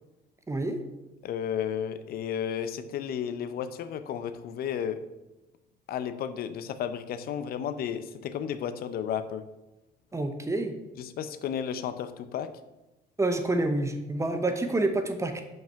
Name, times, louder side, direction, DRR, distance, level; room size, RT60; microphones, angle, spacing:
voice 1, 0.5-0.8 10.1-10.7 13.2-15.4, right 2 dB, 15° right, 7 dB, 0.8 m, -28 dB
voice 2, 1.2-5.0 5.9-9.5 11.0-12.5, left 8 dB, 65° left, 12 dB, 0.6 m, -33 dB
5.7 x 5.4 x 5.7 m, 0.99 s
cardioid pair, 110°, 17 cm